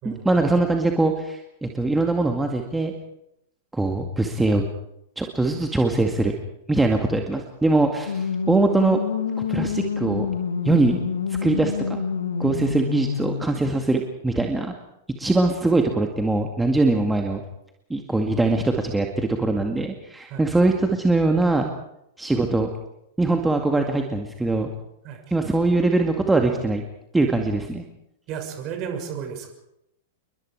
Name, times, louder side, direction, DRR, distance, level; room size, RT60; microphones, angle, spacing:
voice 1, 0.0-2.9 3.7-4.7 5.2-6.3 6.7-9.0 9.4-10.3 10.6-11.0 11.4-12.0 12.4-14.7 15.2-17.4 17.9-21.7 22.2-22.7 23.2-24.7 25.3-26.8 27.1-27.8, right 2 dB, 5° right, 3 dB, 2.1 m, -22 dB
sound 1, 8.1-13.5, left 6 dB, 70° left, 2.7 m, -27 dB
voice 2, 28.3-29.5, right 7 dB, 35° right, 5 dB, 6.2 m, -33 dB
29.0 x 23.0 x 4.9 m, 0.82 s
figure-of-eight pair, 95°, 0 cm